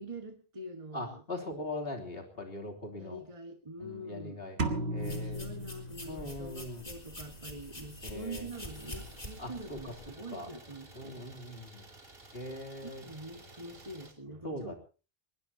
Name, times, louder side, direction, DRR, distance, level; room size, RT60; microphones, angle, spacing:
voice 1, 0.0-1.2 3.0-4.4 5.0-11.2 12.8-14.7, right 2 dB, 30° right, 5 dB, 1.7 m, -45 dB
voice 2, 0.9-3.2 3.8-4.6 4.9-5.5 6.1-6.8 8.0-8.5 9.4-9.9 10.3-10.5 10.9-11.8 12.3-13.0 14.4-14.7, left 1 dB, 70° left, 2 dB, 3.4 m, -41 dB
sound 1, 4.6-6.5, right 2 dB, 85° right, 1.9 m, -35 dB
sound 2, 5.0-10.1, left 1 dB, 40° left, 3.8 m, -46 dB
Idling, 8.5-14.1, right 2 dB, 70° right, 3.3 m, -53 dB
22.0 x 20.5 x 2.8 m, 0.36 s
omnidirectional pair, 1.0 m